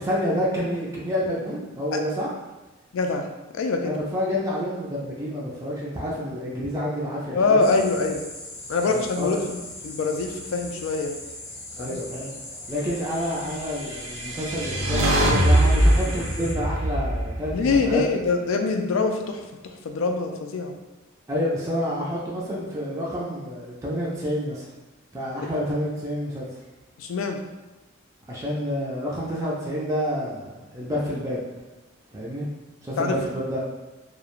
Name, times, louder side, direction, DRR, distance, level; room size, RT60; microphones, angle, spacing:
voice 1, 0.0-2.3 3.8-7.7 8.9-9.4 11.8-12.4 12.7-18.0 21.3-24.7 25.1-26.5 28.3-31.4 32.1-32.5 32.8-33.6, equal, 15° right, -6 dB, 0.4 m, -28 dB
voice 2, 2.9-3.3 3.5-3.9 7.3-8.2 8.7-9.6 9.8-11.2 11.8-12.0 17.5-19.4 19.8-20.7 27.0-27.4 33.0-33.1, left 3 dB, 70° left, 4 dB, 0.3 m, -24 dB
sound 1, 7.6-16.5, left 2 dB, 30° left, 0.6 m, -40 dB
sound 2, 13.9-18.2, right 1 dB, 85° right, 0.5 m, -22 dB
2.3 x 2.1 x 3.0 m, 1.1 s
head